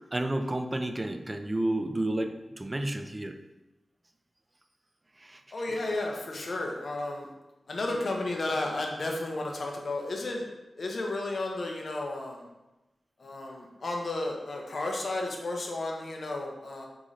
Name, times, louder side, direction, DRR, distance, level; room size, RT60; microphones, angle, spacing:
voice 1, 0.1-3.4 5.2-5.4, right 1 dB, 20° right, 6 dB, 0.3 m, -31 dB
voice 2, 5.5-7.3 7.7-10.5 10.8-12.5 13.2-16.9, left 2 dB, 55° left, 0 dB, 0.7 m, -33 dB
3.8 x 3.8 x 3.1 m, 1.0 s
wide cardioid pair, 140°, 0 cm